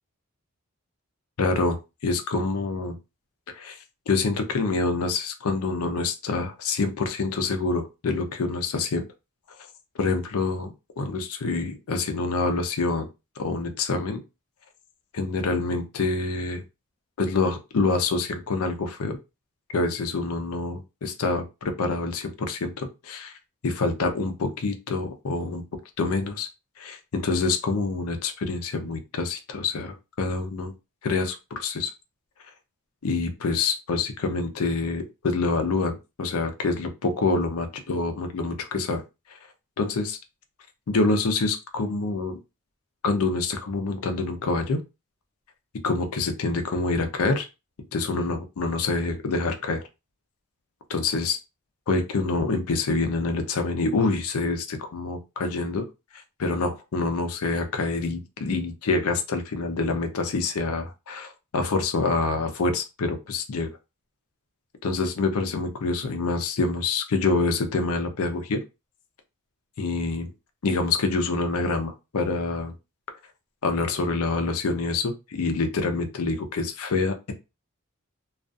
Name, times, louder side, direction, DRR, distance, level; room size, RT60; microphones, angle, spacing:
voice 1, 1.4-3.0 3.5-3.8 4.1-9.1 10.0-13.1 13.4-14.2 15.1-16.6 17.2-19.2 19.7-23.3 23.6-25.6 26.0-26.5 26.8-30.7 31.0-31.9 33.0-39.0 39.8-40.2 40.9-42.4 43.0-44.8 45.8-47.5 47.9-49.8 50.9-51.4 51.9-55.9 56.4-63.7 64.8-68.6 69.8-70.3 70.6-72.7 73.6-77.3, left 3 dB, 75° left, 7 dB, 0.5 m, -26 dB
2.4 x 2.3 x 2.5 m, 0.26 s
head